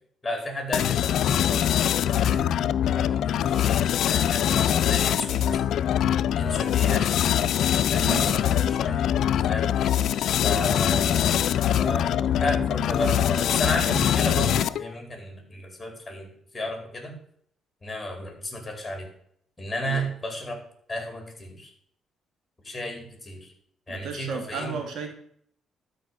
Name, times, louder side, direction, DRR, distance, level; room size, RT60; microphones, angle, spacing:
voice 1, 0.2-2.5 2.9-5.7 6.3-7.1 7.9-9.0 9.5-9.7 10.4-11.5 11.8-17.1 17.8-19.1 19.6-20.6 20.9-21.7 22.6-23.5 23.9-24.7, equal, 15° left, 3 dB, 4.7 m, -33 dB
sound 1, 0.7-14.9, left 10 dB, 75° left, 0.5 m, -23 dB
voice 2, 8.0-8.4 19.8-20.0 23.9-25.1, right 5 dB, 70° right, 4 dB, 2.5 m, -33 dB
12.5 x 5.4 x 8.2 m, 0.64 s
cardioid pair, 90°, 0 cm